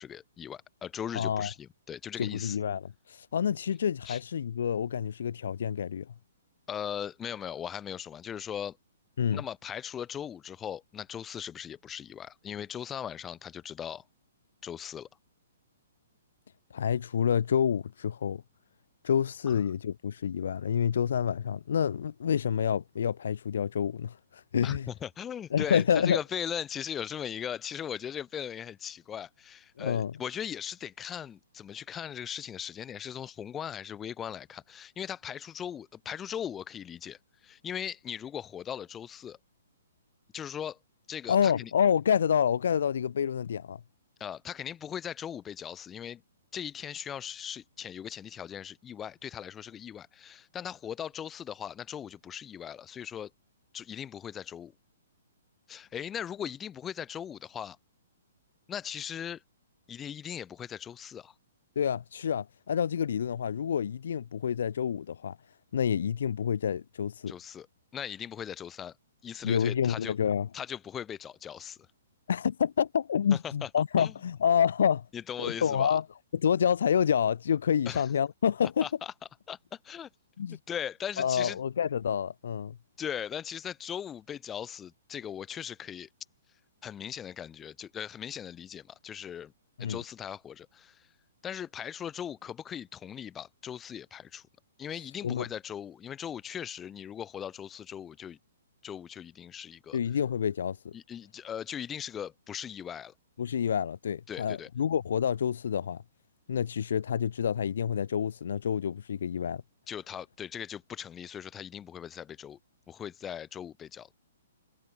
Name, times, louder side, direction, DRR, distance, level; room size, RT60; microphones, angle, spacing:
voice 1, 0.0-2.6 4.1-4.2 6.7-8.8 9.3-14.0 14.6-15.1 19.5-19.6 24.6-39.4 40.3-40.8 41.1-41.7 44.2-46.2 46.5-53.3 53.7-54.7 55.7-57.8 58.7-59.4 59.9-61.3 67.3-67.7 67.9-69.0 69.2-70.1 70.5-71.8 73.3-73.7 74.0-74.1 75.1-76.0 77.9-78.1 78.8-79.1 79.5-80.1 80.5-81.6 83.0-86.1 86.8-89.5 89.8-91.1 91.4-94.5 94.8-98.4 98.8-100.0 100.9-103.1 104.3-104.7 109.9-112.6 112.9-114.1, left 9 dB, 15° left, 7.0 m, -39 dB
voice 2, 1.1-1.5 2.2-6.1 9.2-9.4 16.7-18.4 19.0-24.9 25.5-26.2 29.8-30.1 41.3-43.8 61.8-65.4 65.7-67.3 69.4-70.5 72.3-75.1 75.4-76.0 76.3-78.9 80.4-80.6 81.2-82.8 89.8-90.0 95.2-95.5 99.9-100.9 103.4-106.0 106.5-109.6, left 8 dB, 60° left, 1.8 m, -28 dB
figure-of-eight pair, 120°, 0 cm